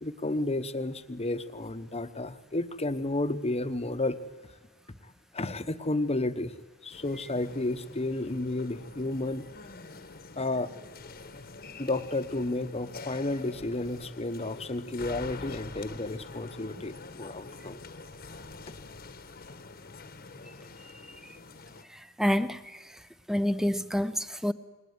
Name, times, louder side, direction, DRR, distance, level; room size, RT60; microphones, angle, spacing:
voice 1, 0.0-4.2 5.3-6.5 6.8-9.5 10.4-10.7 11.8-17.8, left 2 dB, 30° left, 1.1 m, -32 dB
sound 1, 6.9-21.8, left 3 dB, 45° left, 1.3 m, -46 dB
voice 2, 21.9-23.0 23.3-24.5, equal, ahead, 0.8 m, -29 dB
29.0 x 20.5 x 9.6 m
head